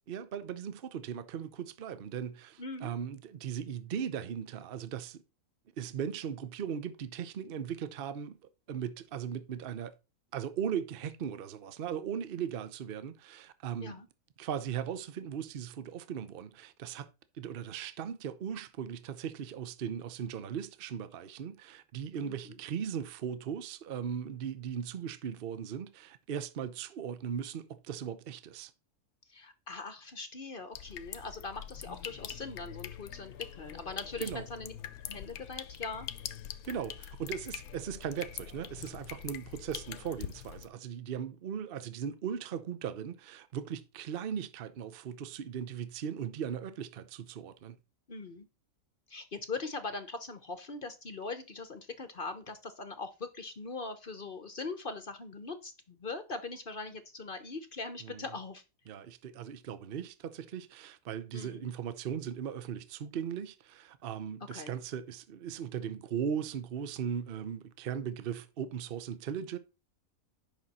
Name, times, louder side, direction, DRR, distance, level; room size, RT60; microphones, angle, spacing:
voice 1, 0.1-5.2 5.8-8.4 8.7-9.9 10.3-14.0 14.4-17.1 17.4-28.7 34.2-34.5 36.6-47.8 58.0-58.2 58.9-69.6, right 8 dB, 50° right, 0.8 m, -38 dB
voice 2, 2.6-2.9 13.8-14.1 22.2-22.5 29.3-34.7 35.1-36.1 48.1-48.5 49.1-58.6 61.3-61.7 64.5-64.8, left 3 dB, 40° left, 0.9 m, -41 dB
sound 1, 30.7-40.7, left 10 dB, 75° left, 1.2 m, -44 dB
10.5 x 6.0 x 4.2 m
omnidirectional pair, 1.6 m